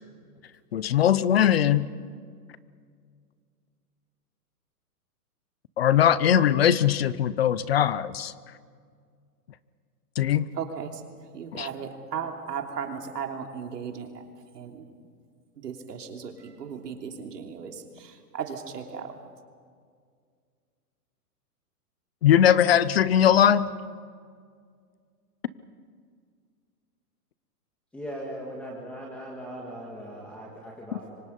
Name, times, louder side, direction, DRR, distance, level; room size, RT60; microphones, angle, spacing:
voice 1, 0.7-1.9 5.8-8.3 10.2-10.5 11.5-11.7 22.2-23.7, left 10 dB, 40° left, 17 dB, 0.6 m, -20 dB
voice 2, 10.6-11.0 11.3-14.1 14.5-14.8 15.6-19.1, right 7 dB, 80° right, 3 dB, 3.2 m, -36 dB
voice 3, 27.9-31.1, equal, 5° left, -3 dB, 1.6 m, -39 dB
28.0 x 24.5 x 5.4 m, 2.1 s
hypercardioid pair, 170°, 47 cm